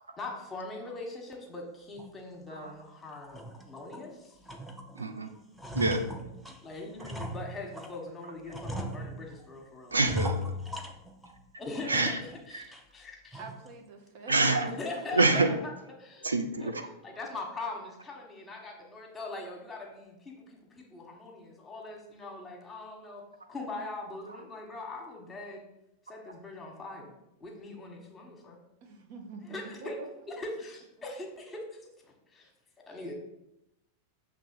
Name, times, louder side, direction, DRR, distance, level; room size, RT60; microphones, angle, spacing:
voice 1, 0.2-4.4 6.6-10.0 11.6-13.4 14.8-15.7 16.0-16.3 16.6-16.7 17.0-25.6 26.1-27.1 27.4-28.6 29.4-30.0 30.3-32.5 32.9-33.1, left 2 dB, 15° left, 1 dB, 1.3 m, -41 dB
sound 1, 2.0-2.1 2.6-2.7 3.2-4.1 4.5-5.1 5.4-8.0 8.5-9.5 9.9-11.4 11.7-12.4 12.7-12.8 13.3-13.7, left 1 dB, ahead, 0.6 m, -38 dB
voice 2, 5.0-5.3 5.7-6.0 9.9-10.5 11.8-12.2 12.5-12.6 14.3-14.7 15.1-15.5 16.2-16.9, right 3 dB, 75° right, 7 dB, 0.4 m, -26 dB
voice 3, 13.4-14.4 15.0-15.1 28.8-29.5 29.8-30.1, right 4 dB, 50° right, 4 dB, 0.8 m, -46 dB
6.7 x 3.1 x 4.7 m, 0.87 s
figure-of-eight pair, 90°, 0 cm